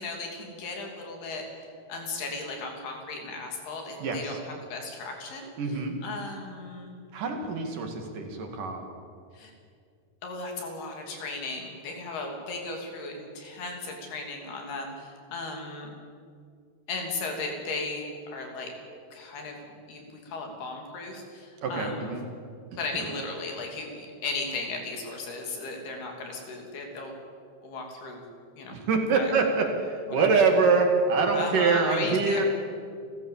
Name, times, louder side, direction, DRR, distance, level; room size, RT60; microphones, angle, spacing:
voice 1, 0.0-5.5 6.0-7.0 9.3-9.5 10.2-15.9 16.9-18.7 19.1-19.6 19.9-22.1 22.8-27.1 27.6-28.2 28.6-28.8 29.1-29.5 30.1-30.4 31.3-32.5, left 3 dB, 70° left, 2 dB, 5.0 m, -36 dB
voice 2, 4.0-4.4 5.6-6.0 7.1-8.9 21.6-22.2 23.0-23.1 28.7-32.4, right 4 dB, 60° right, 3 dB, 3.4 m, -25 dB
29.0 x 14.5 x 7.4 m, 2.3 s
omnidirectional pair, 4.7 m